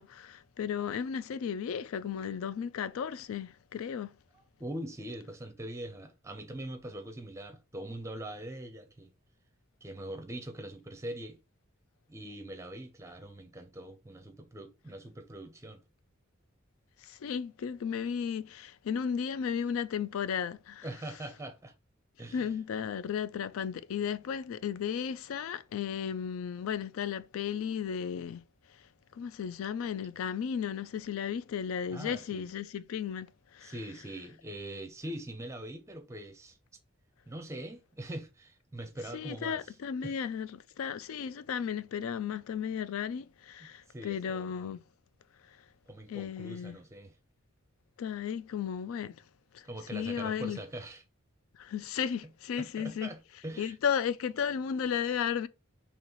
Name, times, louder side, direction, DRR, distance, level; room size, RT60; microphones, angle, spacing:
voice 1, 0.0-4.1 17.0-20.9 22.3-28.4 28.7-28.8 29.1-33.7 39.1-44.8 45.5-45.6 46.1-46.8 48.0-49.2 49.5-49.6 49.9-50.6 51.5-53.1 53.6-55.5, left 7 dB, 75° left, 0.3 m, -34 dB
voice 2, 4.6-9.1 9.8-11.4 12.1-15.8 20.8-21.7 22.2-22.4 31.9-32.5 33.6-36.6 37.3-39.7 40.0-40.1 43.9-44.6 45.9-47.2 49.6-51.0 52.6-53.7, right 1 dB, 15° right, 0.6 m, -42 dB
4.0 x 2.9 x 3.0 m
head